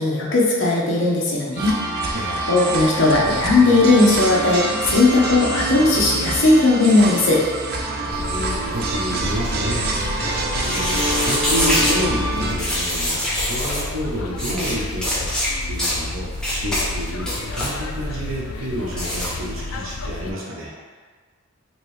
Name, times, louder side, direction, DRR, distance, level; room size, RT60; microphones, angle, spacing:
voice 1, 0.0-1.7 2.5-7.4, left 2 dB, 65° left, -4 dB, 0.7 m, -17 dB
sound 1, 1.6-12.6, right 2 dB, 50° right, 0.4 m, -26 dB
voice 2, 2.1-2.5 7.9-20.7, equal, 70° right, -4 dB, 0.8 m, -30 dB
sound 2, 8.1-20.3, left 2 dB, 80° left, 0.3 m, -31 dB
sound 3, 10.6-12.0 12.6-13.8 14.4-14.7 15.0-15.5 15.8-16.0 16.4-16.8 17.2-17.7 18.9-19.3, equal, 5° left, 0.6 m, -24 dB
2.9 x 2.8 x 3.1 m, 1.5 s
head